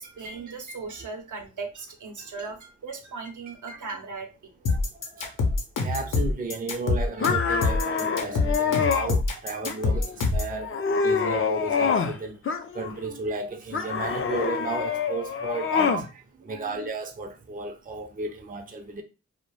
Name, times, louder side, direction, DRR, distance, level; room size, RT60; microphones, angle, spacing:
voice 1, 0.0-4.8 15.7-15.8 16.5-16.8, right 4 dB, 70° right, 0.7 m, -38 dB
sound 1, 4.7-10.5, left 3 dB, 85° left, 0.7 m, -25 dB
voice 2, 4.7-5.6 5.8-10.7 11.0-12.4 12.7-19.0, right 3 dB, 30° right, 0.5 m, -34 dB
sound 2, 7.2-9.1 9.7-10.2 10.6-12.2 12.5-13.2 13.7-16.1, left 6 dB, 40° left, 0.4 m, -26 dB
2.2 x 2.1 x 3.1 m
cardioid pair, 55°, 31 cm